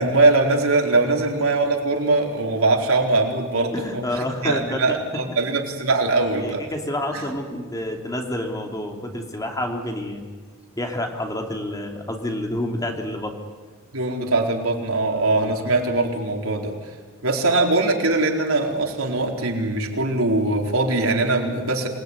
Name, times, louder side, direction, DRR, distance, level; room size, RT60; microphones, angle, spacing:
voice 1, 0.0-6.6 7.1-7.3 13.9-16.7 17.2-21.9, right 2 dB, 85° right, 1 dB, 4.4 m, -21 dB
voice 2, 3.7-5.0 6.4-10.2 10.8-13.3 15.3-15.6, left 1 dB, 15° left, 3 dB, 3.0 m, -28 dB
27.0 x 20.5 x 9.9 m, 1.4 s
head